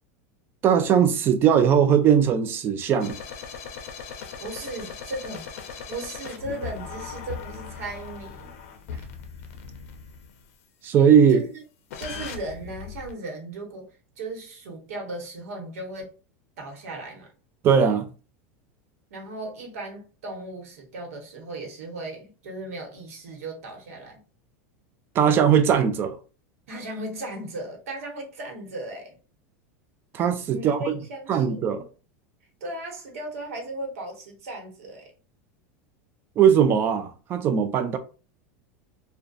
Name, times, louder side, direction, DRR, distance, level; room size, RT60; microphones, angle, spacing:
voice 1, 0.6-3.2 10.8-11.4 17.6-18.1 25.2-26.2 30.1-31.0 31.3-31.8 36.4-38.0, right 8 dB, 30° right, 0.3 m, -19 dB
sound 1, 3.0-10.4 11.9-13.1, left 6 dB, 75° left, 0.5 m, -39 dB
voice 2, 4.4-5.5 5.8-8.5 11.3-11.6 12.0-13.9 14.2-16.1 16.6-17.3 19.1-24.2 26.7-29.2 30.5-31.8 32.6-35.1, right 2 dB, 90° right, 1.0 m, -36 dB
2.5 x 2.1 x 2.3 m
supercardioid pair, 145°, 8 cm